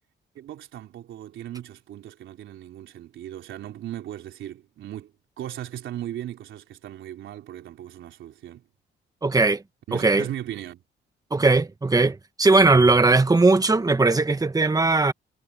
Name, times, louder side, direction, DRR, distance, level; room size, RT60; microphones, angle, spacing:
voice 1, 0.4-8.6 9.9-10.8, right 12 dB, 75° right, 3.6 m, -37 dB
voice 2, 9.2-9.6 9.9-10.3 11.3-15.1, right 3 dB, 20° right, 1.6 m, -19 dB
cardioid pair, 90°, 20 cm